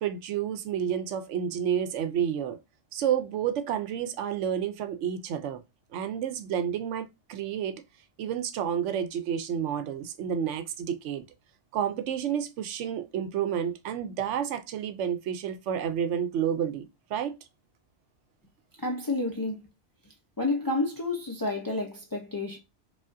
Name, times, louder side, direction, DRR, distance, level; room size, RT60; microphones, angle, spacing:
voice 1, 0.0-2.6 2.9-5.6 5.9-7.8 8.2-11.2 11.7-17.4, right 9 dB, 80° right, 0.9 m, -30 dB
voice 2, 18.8-19.6 20.4-22.6, left 2 dB, 35° left, 0.3 m, -30 dB
4.9 x 2.4 x 2.5 m
omnidirectional pair, 1.2 m